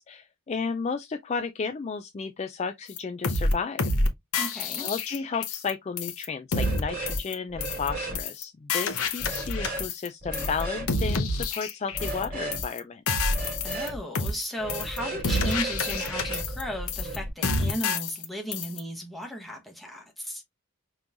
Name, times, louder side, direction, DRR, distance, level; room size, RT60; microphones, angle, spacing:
voice 1, 0.0-3.9 4.8-13.2, left 5 dB, 30° left, 0.3 m, -33 dB
sound 1, 3.0-3.1 3.2-3.5 3.8-4.1 4.3-5.7 6.0-6.2 6.5-6.8 7.1-7.3 7.6-7.9 8.1-8.4 8.7-10.1 10.3-10.6 10.9-12.2 12.5-12.8 13.1-13.9 14.1-14.4 14.7-15.0 15.2-16.6 16.9-17.2 17.4-18.2 18.5-18.8, left 3 dB, 75° left, 0.9 m, -28 dB
voice 2, 4.4-4.9 13.6-20.4, equal, ahead, 1.0 m, -35 dB
sound 2, 6.5-7.2 7.5-8.2 9.2-9.8 10.2-10.9 11.9-12.6 13.3-14.0 14.6-17.3, right 1 dB, 40° right, 2.5 m, -34 dB
5.2 x 3.0 x 2.5 m
head